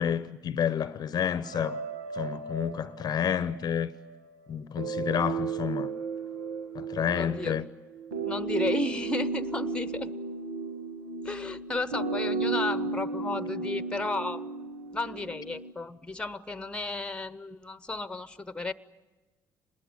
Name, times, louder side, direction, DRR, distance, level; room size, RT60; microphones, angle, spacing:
voice 1, 0.0-1.8 2.1-3.9 4.5-5.9 6.7-7.7, left 8 dB, 45° left, 0.8 m, -29 dB
sound 1, 1.4-4.3 4.8-15.7, right 4 dB, 85° right, 1.4 m, -34 dB
voice 2, 7.2-7.6 8.2-10.1 11.2-14.5 14.9-18.7, left 3 dB, 10° left, 1.1 m, -33 dB
26.0 x 20.5 x 9.6 m
hypercardioid pair, 55°, 9 cm